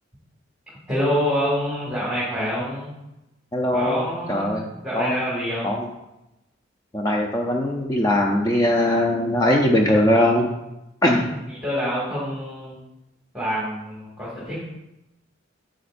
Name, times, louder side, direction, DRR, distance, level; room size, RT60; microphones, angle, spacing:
voice 1, 0.9-2.9 3.7-4.6 4.8-5.7 11.1-12.8 13.3-14.6, equal, 5° right, -8 dB, 2.1 m, -26 dB
voice 2, 3.5-4.7 4.9-5.1 5.6-5.9 6.9-10.5 11.0-11.2, left 1 dB, 15° left, 0 dB, 0.6 m, -20 dB
11.0 x 7.6 x 2.6 m, 0.92 s
head